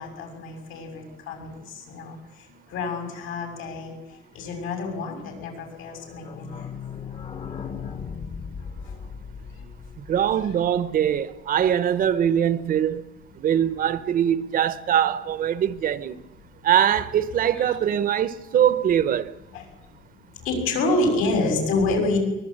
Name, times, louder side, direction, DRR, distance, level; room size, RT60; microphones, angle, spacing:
voice 1, 0.0-2.2 2.7-4.0 4.3-6.7 17.6-17.7 19.5-19.6 20.4-22.2, left 2 dB, 85° left, 6.9 m, -27 dB
sound 1, 5.9-11.4 11.7-11.8 12.0-12.1 12.4-12.5, left 6 dB, 30° left, 0.9 m, -37 dB
voice 2, 10.1-13.0 13.4-16.3 16.6-19.3, right 9 dB, 45° right, 0.8 m, -22 dB
23.5 x 20.0 x 8.7 m
cardioid pair, 170°, 21 cm